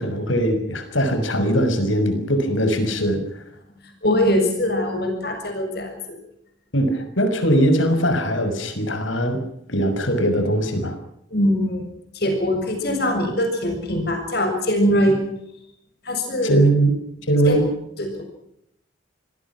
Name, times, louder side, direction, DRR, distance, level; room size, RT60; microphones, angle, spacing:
voice 1, 0.0-3.2 6.7-9.4 9.7-10.9 16.4-16.9 17.3-17.6, right 1 dB, 80° left, 8 dB, 6.3 m, -20 dB
voice 2, 4.0-5.9 11.3-11.9 12.1-15.2 16.1-16.6 17.5-17.6 18.0-18.2, equal, 50° left, 4 dB, 7.1 m, -22 dB
29.0 x 21.5 x 6.2 m, 0.75 s
head